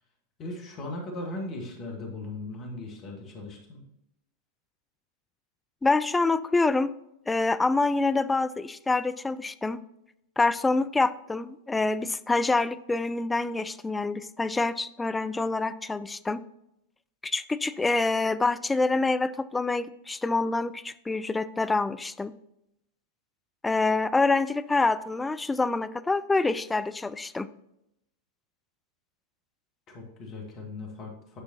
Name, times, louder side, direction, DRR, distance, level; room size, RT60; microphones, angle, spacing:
voice 1, 0.4-3.8 29.9-31.4, left 2 dB, 35° left, 0 dB, 1.9 m, -38 dB
voice 2, 5.8-6.9 7.3-9.8 10.4-16.4 17.2-22.3 23.6-27.5, left 3 dB, 10° left, 12 dB, 0.3 m, -26 dB
9.3 x 6.2 x 2.8 m, 0.83 s
figure-of-eight pair, 90°, 0 cm